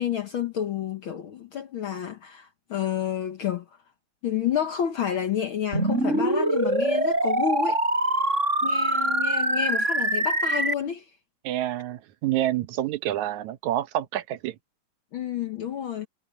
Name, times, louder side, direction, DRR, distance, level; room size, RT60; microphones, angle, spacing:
voice 1, 0.0-3.6 4.2-7.8 8.6-11.0 15.1-16.1, left 9 dB, 60° left, 1.4 m, -29 dB
sound 1, 5.7-10.7, right 2 dB, 20° right, 6.1 m, -24 dB
voice 2, 11.4-14.6, right 13 dB, 75° right, 2.2 m, -28 dB
omnidirectional pair, 3.4 m